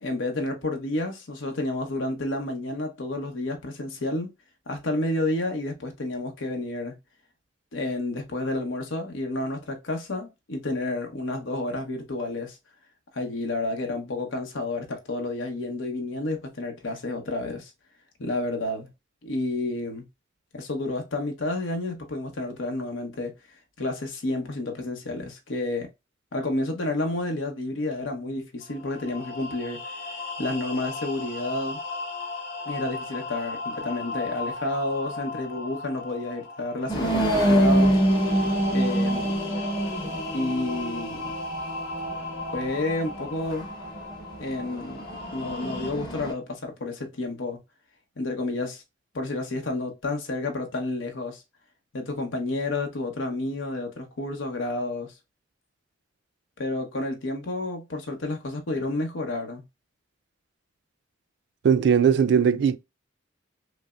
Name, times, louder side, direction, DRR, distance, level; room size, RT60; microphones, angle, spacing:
voice 1, 0.0-4.3 4.7-6.9 7.7-12.6 13.1-17.7 18.2-18.9 19.2-20.0 20.5-23.3 23.8-25.9 26.3-29.8 30.4-31.8 32.7-38.0 38.7-39.4 40.3-41.3 42.5-43.7 44.4-45.0 45.3-47.6 48.2-48.8 49.1-51.4 51.9-55.1 56.6-59.6, left 2 dB, 80° left, 0.8 m, -30 dB
sound 1, 28.6-45.9, left 2 dB, 60° left, 1.4 m, -36 dB
sound 2, 36.9-46.3, right 1 dB, 25° left, 0.8 m, -26 dB
voice 2, 61.6-62.8, right 7 dB, 60° right, 0.3 m, -19 dB
5.1 x 2.0 x 2.3 m
head